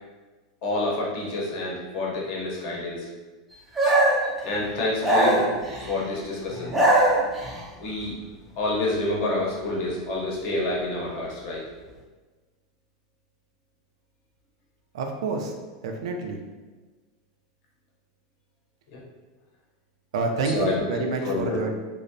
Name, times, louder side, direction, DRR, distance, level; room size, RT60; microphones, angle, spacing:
voice 1, 0.6-3.1 4.4-5.5 5.9-6.7 7.8-8.1 8.6-11.6 18.9-19.0 20.5-21.6, left 2 dB, 40° left, -4 dB, 0.6 m, -28 dB
sound 1, 3.8-4.3 5.0-5.9 6.5-7.6, right 1 dB, 5° right, 0.3 m, -21 dB
voice 2, 14.9-15.5 15.8-16.4 20.1-21.7, right 3 dB, 80° right, 3 dB, 0.3 m, -28 dB
2.5 x 2.0 x 2.5 m, 1.3 s
supercardioid pair, 170°, 3 cm